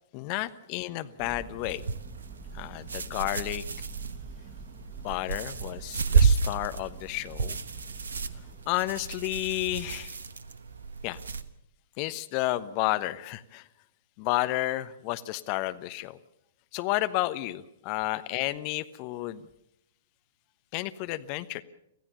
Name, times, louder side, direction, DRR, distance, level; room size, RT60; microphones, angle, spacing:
voice 1, 0.1-1.8 2.5-3.6 5.0-7.6 8.7-10.2 11.0-11.2 12.0-13.6 14.2-16.2 16.7-19.4 20.7-21.6, left 18 dB, 35° left, 12 dB, 1.1 m, -31 dB
Thunder, 1.2-9.1, right 4 dB, 20° right, 1.2 m, -47 dB
sound 1, 1.6-11.4, right 5 dB, 70° right, 1.2 m, -31 dB
26.0 x 15.0 x 6.9 m, 0.79 s
figure-of-eight pair, 110°, 0 cm